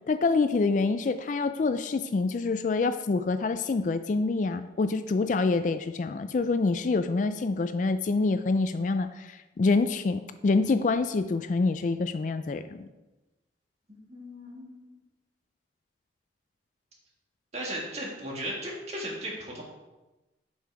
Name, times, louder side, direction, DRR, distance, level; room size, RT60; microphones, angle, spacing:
voice 1, 0.1-12.9, left 3 dB, 45° left, 10 dB, 0.3 m, -26 dB
voice 2, 13.9-15.0 17.5-19.6, right 1 dB, 35° right, -2 dB, 1.9 m, -36 dB
7.6 x 5.6 x 4.8 m, 1.1 s
head